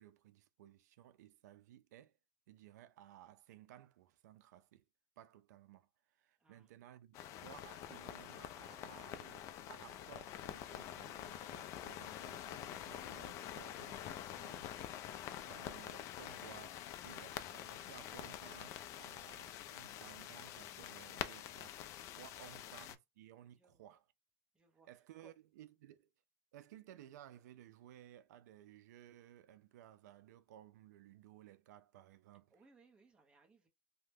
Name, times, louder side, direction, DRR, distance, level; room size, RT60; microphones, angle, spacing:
voice 1, 0.0-2.2 2.5-4.8 5.2-21.8 22.2-24.1 24.8-26.1 26.5-32.6, right 12 dB, 90° right, 0.4 m, -58 dB
sound 1, 7.1-23.0, left 11 dB, 35° left, 0.3 m, -47 dB
voice 2, 22.3-22.6 23.6-23.9 24.5-24.9 25.2-25.3 32.5-33.7, right 3 dB, 10° right, 0.7 m, -67 dB
2.8 x 2.1 x 3.3 m
supercardioid pair, 150°, 9 cm